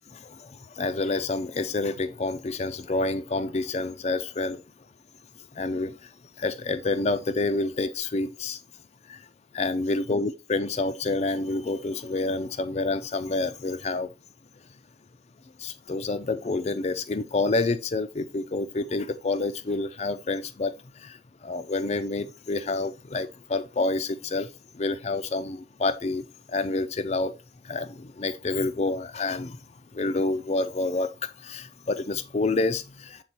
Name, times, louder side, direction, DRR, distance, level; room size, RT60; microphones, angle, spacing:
voice 1, 0.8-4.6 5.6-5.9 6.4-8.6 9.1-9.2 9.5-14.1 15.6-20.7 21.0-21.2 21.4-24.5 24.8-26.2 26.5-27.3 27.6-29.6 29.9-33.2, left 3 dB, 35° left, 0.4 m, -28 dB
8.0 x 3.8 x 4.2 m
head